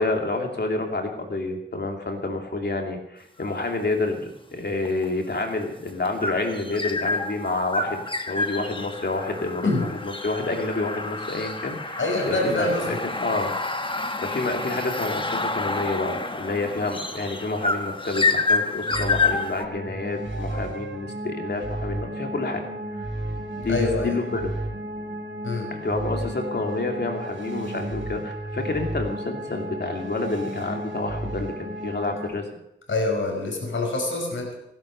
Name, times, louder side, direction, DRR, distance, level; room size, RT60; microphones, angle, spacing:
voice 1, 0.0-8.0 8.3-12.0 12.3-13.5 13.9-22.6 23.6-24.5 25.7-32.4, left 3 dB, 60° left, 2 dB, 2.9 m, -28 dB
sound 1, 3.4-3.8 4.8-19.7, left 3 dB, 25° left, 1.2 m, -29 dB
voice 2, 12.0-13.0 23.7-24.2 25.4-25.7 32.9-34.6, left 2 dB, 80° left, 0 dB, 5.3 m, -25 dB
sound 2, 18.9-32.3, right 1 dB, 80° right, 3.8 m, -33 dB
17.0 x 11.0 x 6.6 m, 0.82 s
wide cardioid pair, 100°, 20 cm